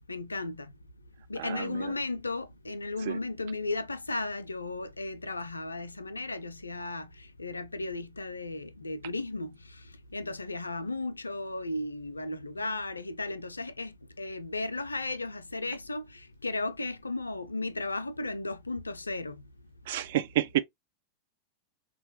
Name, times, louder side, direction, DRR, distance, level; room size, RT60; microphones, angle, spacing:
voice 1, 0.1-0.7 1.3-7.1 7.4-9.5 10.1-19.4, left 2 dB, 80° left, 0.3 m, -35 dB
voice 2, 1.4-1.9 3.0-3.2 19.9-20.6, right 13 dB, 55° right, 0.3 m, -30 dB
3.5 x 2.2 x 2.7 m
figure-of-eight pair, 90°, 0 cm